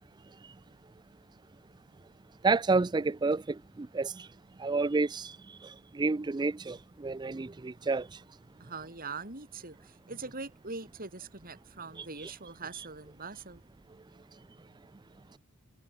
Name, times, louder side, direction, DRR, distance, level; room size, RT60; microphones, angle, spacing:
voice 1, 2.4-4.3 4.6-5.4 5.6-8.2, right 3 dB, 20° right, 0.4 m, -30 dB
voice 2, 8.6-13.6, right 4 dB, 40° right, 7.2 m, -42 dB
head